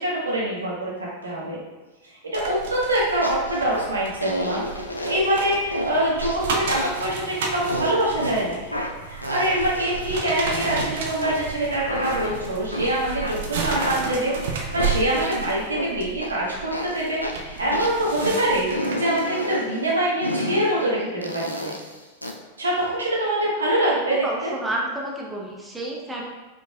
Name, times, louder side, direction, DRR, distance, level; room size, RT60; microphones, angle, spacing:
voice 1, 0.0-1.6 2.3-4.6 5.1-8.8 9.1-21.7 22.6-24.2, right 1 dB, 75° right, -5 dB, 1.3 m, -24 dB
sound 1, 2.3-19.2 19.7-19.9, right 5 dB, 55° right, 0.6 m, -33 dB
sound 2, 3.2-3.9 4.2-5.4 5.7-6.0 6.2-7.2 7.7-8.4 8.7-10.9 11.2-12.9 13.2-15.9 16.2-16.4 16.7-18.3 18.7-19.7 20.2-20.7 21.2-22.3, equal, 85° left, 0.4 m, -30 dB
voice 2, 24.2-26.2, right 1 dB, 10° right, -3 dB, 0.7 m, -30 dB
5.0 x 4.5 x 2.4 m, 1.2 s
figure-of-eight pair, 90°, 0 cm